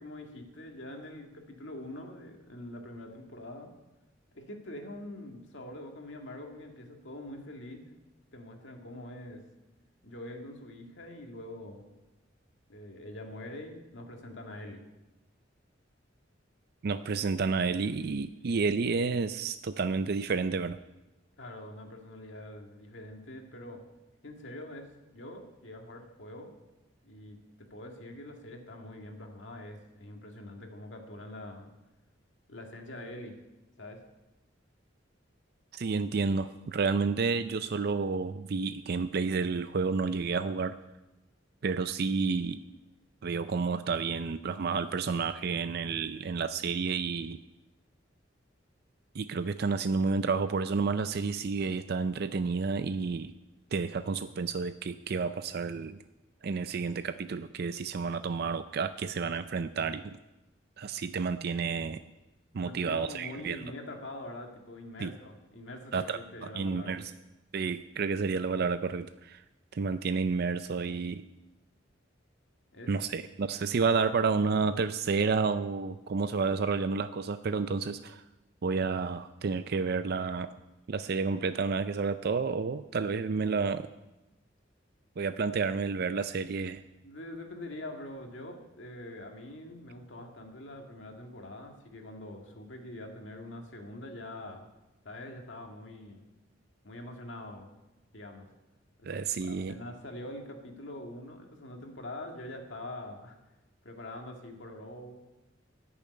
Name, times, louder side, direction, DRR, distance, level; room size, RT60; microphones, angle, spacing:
voice 1, 0.0-3.7 4.3-7.9 8.3-9.4 10.0-11.8 12.7-14.8 21.4-23.8 24.2-26.5 27.0-31.7 32.5-33.3 33.8-34.0 62.6-67.0 72.7-72.9 87.0-94.6 95.0-96.2 96.8-97.7 98.1-98.5 99.0-103.4 103.8-105.5, left 1 dB, 70° left, 3 dB, 2.1 m, -44 dB
voice 2, 16.8-20.8 35.7-40.8 41.6-42.6 43.2-47.4 49.1-53.3 53.7-56.0 56.4-60.2 60.8-62.0 62.5-63.6 65.0-65.1 65.9-67.1 67.5-69.4 69.7-71.2 72.9-78.2 78.6-80.5 80.9-83.9 85.2-86.8 99.1-99.7, right 4 dB, 55° right, 11 dB, 0.4 m, -30 dB
13.5 x 7.0 x 9.5 m, 1.0 s
head